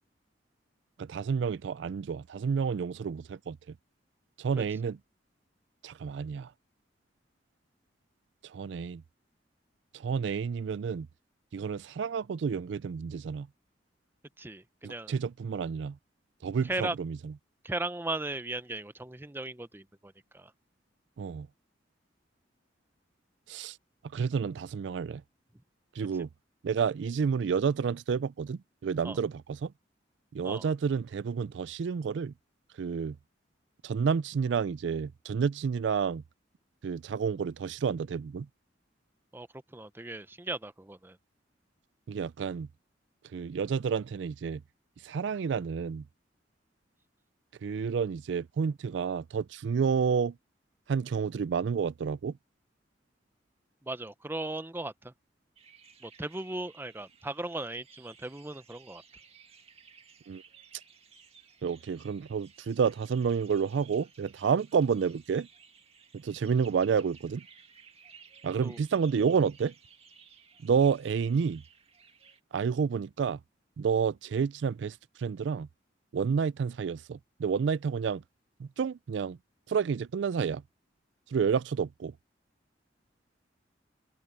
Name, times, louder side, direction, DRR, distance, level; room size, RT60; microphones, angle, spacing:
voice 1, 1.0-3.7 4.4-5.0 5.8-6.5 8.4-9.0 9.9-11.1 11.5-13.5 14.8-16.0 16.4-17.3 21.2-21.5 23.5-23.8 24.1-25.2 26.0-26.3 26.6-29.7 30.3-32.3 32.8-33.2 33.8-36.2 36.8-38.5 42.1-42.7 43.3-44.6 45.0-46.0 47.6-50.3 50.9-52.4 60.3-60.4 61.6-65.5 66.1-67.4 68.4-69.7 70.6-71.6 72.5-73.4 73.8-75.7 76.1-78.2 78.6-79.4 79.7-80.6 81.3-82.1, right 6 dB, 75° right, 0.4 m, -30 dB
voice 2, 14.4-15.1 16.7-17.0 17.6-20.5 29.0-29.2 30.4-30.6 39.3-39.5 39.7-41.2 53.8-55.1 56.0-59.0 68.6-68.8, right 2 dB, 10° right, 0.6 m, -37 dB
sound 1, 55.6-72.4, right 6 dB, 35° right, 1.9 m, -57 dB
open air
head